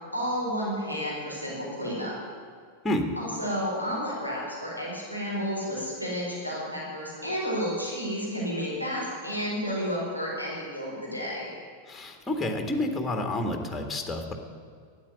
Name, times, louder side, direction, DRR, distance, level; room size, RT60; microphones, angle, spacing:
voice 1, 0.1-2.1 3.2-11.5, equal, 90° right, -5 dB, 4.3 m, -31 dB
voice 2, 11.9-14.3, left 1 dB, 10° left, 4 dB, 1.8 m, -29 dB
12.5 x 9.0 x 9.3 m, 2.1 s
figure-of-eight pair, 90°, 0 cm